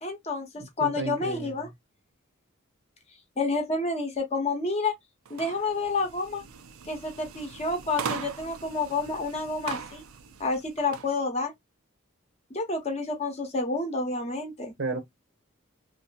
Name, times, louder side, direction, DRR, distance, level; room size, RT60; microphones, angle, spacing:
voice 1, 0.0-1.7 3.4-4.9 5.3-6.4 6.8-10.0 10.4-11.5 12.5-14.7, left 3 dB, 30° left, 0.8 m, -29 dB
voice 2, 0.6-1.7 14.8-15.0, right 3 dB, 60° right, 0.8 m, -33 dB
sound 1, 5.3-11.1, right 6 dB, 85° right, 0.5 m, -40 dB
2.7 x 2.4 x 2.2 m
head